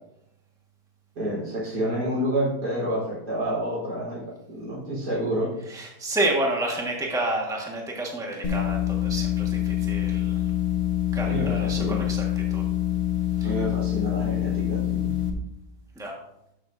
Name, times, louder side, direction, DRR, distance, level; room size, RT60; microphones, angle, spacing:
voice 1, 1.2-5.5 11.2-12.1 13.4-15.1, equal, 85° right, -7 dB, 4.4 m, -29 dB
voice 2, 5.7-10.4 11.1-12.6 13.4-13.5 15.9-16.1, right 1 dB, ahead, -1 dB, 1.3 m, -30 dB
sound 1, 8.4-15.3, left 12 dB, 40° left, 1.4 m, -26 dB
12.5 x 6.7 x 2.6 m, 0.82 s
omnidirectional pair, 1.7 m